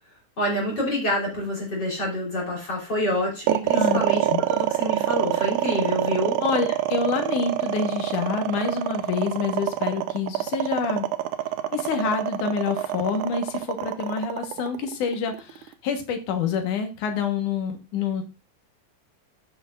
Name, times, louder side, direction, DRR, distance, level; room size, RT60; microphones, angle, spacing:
voice 1, 0.4-6.4, left 1 dB, 35° left, -3 dB, 3.6 m, -27 dB
sound 1, 3.5-15.7, right 13 dB, 90° right, 2.1 m, -25 dB
voice 2, 6.4-11.1 11.7-18.2, left 6 dB, 85° left, 5 dB, 2.8 m, -27 dB
14.5 x 6.1 x 2.5 m, 0.28 s
omnidirectional pair, 3.5 m